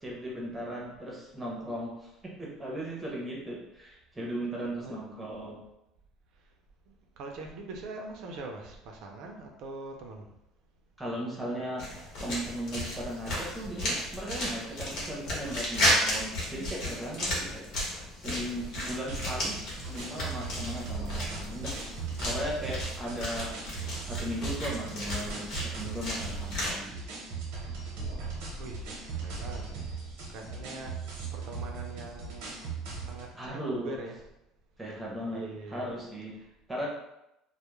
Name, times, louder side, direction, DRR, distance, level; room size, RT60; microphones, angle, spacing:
voice 1, 0.0-2.1 2.4-5.6 11.0-11.8 12.2-17.6 18.1-19.6 19.9-21.7 22.2-23.6 24.0-27.0 33.3-34.0 34.8-35.4 35.7-36.3 36.7-36.9, equal, 10° right, -4 dB, 0.6 m, -37 dB
voice 2, 6.9-10.3 28.6-29.9 30.3-34.2 35.3-35.8, right 3 dB, 55° right, 2 dB, 0.4 m, -43 dB
sound 1, 11.8-26.8, equal, 55° left, 0.9 m, -34 dB
sound 2, 19.1-33.3, right 4 dB, 90° right, 0.8 m, -38 dB
2.2 x 2.0 x 3.0 m, 0.86 s
cardioid pair, 155°, 0 cm